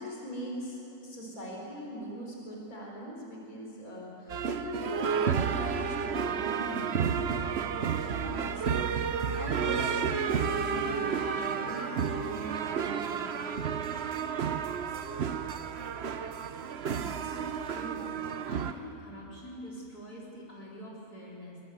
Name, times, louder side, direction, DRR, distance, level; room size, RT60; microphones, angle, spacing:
voice 1, 0.0-13.8, equal, 65° left, -2 dB, 4.7 m, -41 dB
sound 1, 4.3-18.7, right 7 dB, 50° right, 0.9 m, -31 dB
Wind instrument woodwind instrument, 8.6-14.9, right 2 dB, 5° right, 2.9 m, -45 dB
sound 2, 10.7-13.9, right 9 dB, 90° right, 1.5 m, -45 dB
voice 2, 16.8-18.1 18.4-21.6, equal, 85° left, -5 dB, 5.0 m, -45 dB
23.5 x 22.5 x 7.9 m, 2.8 s
omnidirectional pair, 1.6 m